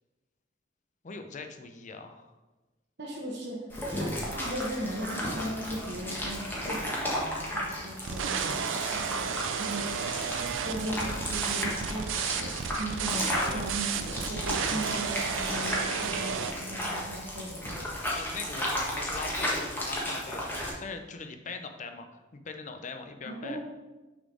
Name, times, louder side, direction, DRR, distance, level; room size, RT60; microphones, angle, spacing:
voice 1, 1.0-2.3 13.3-13.6 18.2-22.1 22.3-23.6, left 4 dB, 40° left, 6 dB, 0.6 m, -41 dB
voice 2, 3.0-3.7 4.0-9.9 10.6-17.9 23.2-23.6, right 1 dB, 60° right, -2 dB, 1.1 m, -38 dB
sound 1, 3.7-20.7, left 1 dB, 10° left, 1.3 m, -34 dB
sound 2, 8.0-16.5, right 6 dB, 80° right, 0.5 m, -32 dB
6.2 x 4.2 x 4.8 m, 1.1 s
head